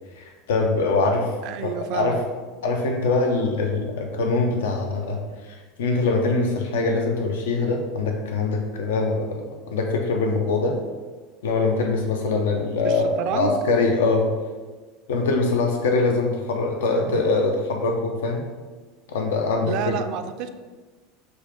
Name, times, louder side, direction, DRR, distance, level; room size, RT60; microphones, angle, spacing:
voice 1, 0.1-1.3 1.6-2.2 2.6-10.8 11.4-14.3 15.1-18.4 19.1-19.9, left 3 dB, 85° left, 2 dB, 0.5 m, -23 dB
voice 2, 1.4-2.2 12.8-13.6 19.6-20.5, right 8 dB, 60° right, 9 dB, 0.3 m, -29 dB
6.1 x 2.4 x 3.5 m, 1.3 s
supercardioid pair, 110°, 0 cm